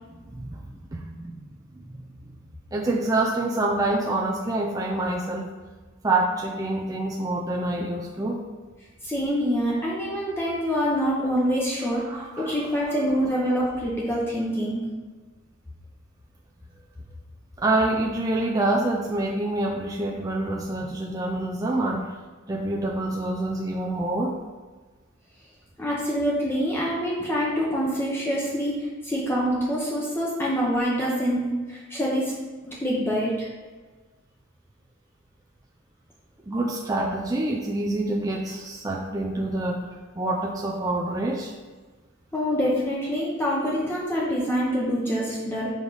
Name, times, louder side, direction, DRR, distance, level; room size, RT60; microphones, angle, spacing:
voice 1, 0.3-1.4 1.8-1.9 2.7-5.5 6.0-8.4 12.1-12.6 17.6-22.1 22.5-24.4 36.5-39.9 40.2-41.5, right 2 dB, 15° right, -1 dB, 0.4 m, -26 dB
voice 2, 9.0-14.8 25.8-32.3 32.6-33.5 42.3-45.7, equal, 10° left, -5 dB, 0.8 m, -26 dB
5.1 x 4.7 x 4.0 m, 1.4 s
head